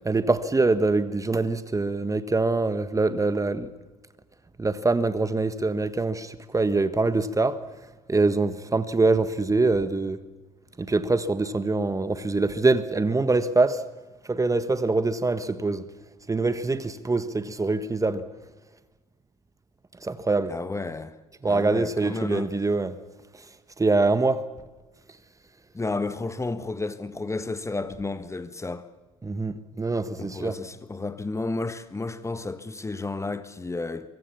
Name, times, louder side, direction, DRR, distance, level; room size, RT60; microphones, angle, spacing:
voice 1, 0.0-3.7 4.6-7.6 8.1-10.2 10.8-13.8 14.3-15.8 16.3-18.2 20.0-20.5 21.4-23.0 23.8-24.5 29.2-30.6, right 3 dB, 20° right, 1.5 m, -24 dB
voice 2, 20.5-21.2 21.5-22.5 25.7-28.9 30.2-34.1, left 3 dB, 15° left, 1.4 m, -32 dB
24.0 x 23.0 x 7.2 m
hypercardioid pair, 60°, 18 cm